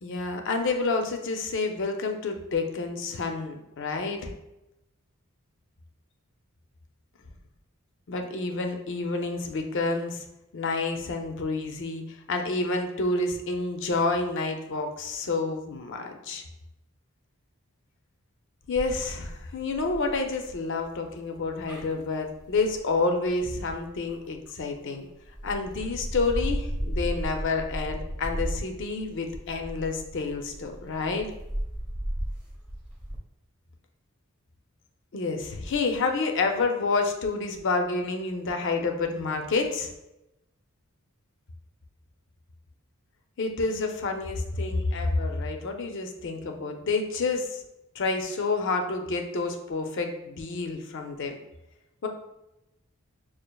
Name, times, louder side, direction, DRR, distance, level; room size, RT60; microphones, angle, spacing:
voice 1, 0.0-4.3 8.1-10.2 10.5-16.4 18.7-25.1 25.4-31.3 35.1-39.9 43.4-47.6 47.9-51.4 52.0-52.1, left 3 dB, 60° left, 4 dB, 0.5 m, -29 dB
sound 1, 18.7-24.7 25.2-33.2, equal, 5° right, 0.7 m, -35 dB
6.3 x 2.4 x 2.3 m, 0.92 s
head